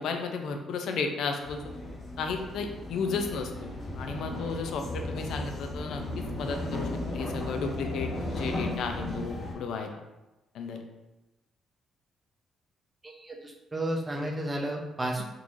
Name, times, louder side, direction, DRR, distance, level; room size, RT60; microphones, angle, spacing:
voice 1, 0.0-1.6 2.2-3.7 4.0-10.0 10.5-10.8, left 5 dB, 75° left, 5 dB, 0.5 m, -33 dB
sound 1, 1.4-9.5, left 1 dB, 50° left, 1.1 m, -35 dB
voice 2, 13.0-15.2, right 1 dB, 20° right, 1 dB, 0.6 m, -32 dB
3.7 x 3.0 x 2.6 m, 1.0 s
cardioid pair, 90°, 0 cm